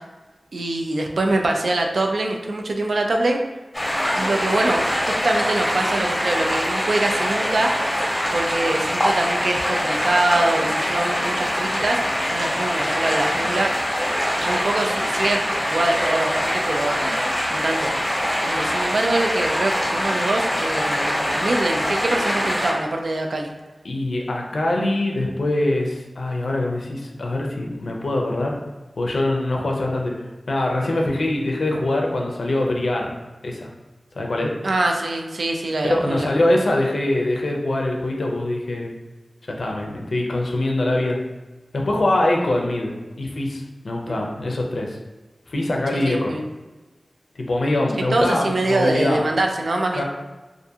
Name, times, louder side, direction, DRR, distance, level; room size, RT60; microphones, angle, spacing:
voice 1, 0.5-3.4 4.1-7.7 8.3-12.0 12.3-13.7 14.4-15.4 15.7-17.0 17.5-17.9 18.4-23.5 34.6-36.3 44.1-44.2 45.9-46.5 48.1-50.0, right 2 dB, 90° right, 2 dB, 0.3 m, -24 dB
sound 1, 3.7-22.7, equal, 20° left, 0.7 m, -23 dB
voice 2, 23.8-28.6 29.0-33.1 33.4-33.7 34.2-34.5 35.9-38.9 39.6-41.2 41.7-45.0 45.5-46.3 47.4-49.2 49.9-50.0, left 1 dB, 85° left, 0 dB, 0.4 m, -23 dB
2.5 x 2.3 x 2.7 m, 1.2 s
wide cardioid pair, 75°, 0 cm